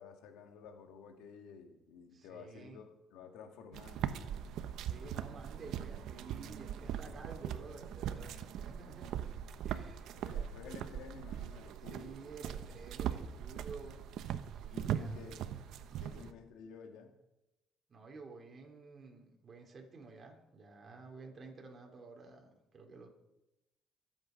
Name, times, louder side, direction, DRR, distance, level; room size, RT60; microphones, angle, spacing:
voice 1, 0.0-4.2 9.0-9.1 10.1-12.2 14.7-15.4 16.0-17.1, left 6 dB, 80° left, 5 dB, 2.2 m, -52 dB
voice 2, 2.1-2.8 4.8-9.1 9.6-10.2 11.9-14.0 14.5-15.3 15.9-16.3 17.9-23.1, right 4 dB, 30° right, 1 dB, 3.5 m, -52 dB
sound 1, 3.7-16.3, right 9 dB, 70° right, 1.0 m, -40 dB
24.0 x 8.8 x 5.3 m, 0.92 s
cardioid pair, 115°, 0 cm